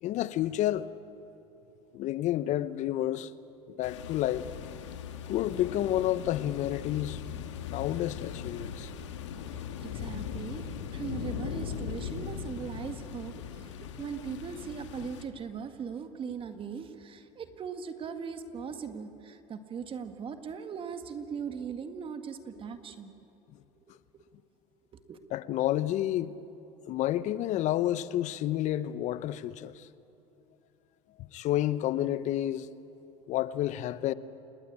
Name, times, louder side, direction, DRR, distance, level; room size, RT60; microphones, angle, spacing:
voice 1, 0.0-0.9 1.9-3.3 3.7-4.5 5.3-7.2 7.7-8.9 25.3-26.3 26.9-29.9 31.2-32.7 33.3-34.1, left 13 dB, 55° left, 1.0 m, -30 dB
sound 1, 3.8-15.3, left 8 dB, 85° left, 1.8 m, -39 dB
voice 2, 9.5-23.1 24.9-25.2, right 6 dB, 35° right, 1.8 m, -39 dB
29.0 x 19.5 x 8.8 m
hypercardioid pair, 90°, 15 cm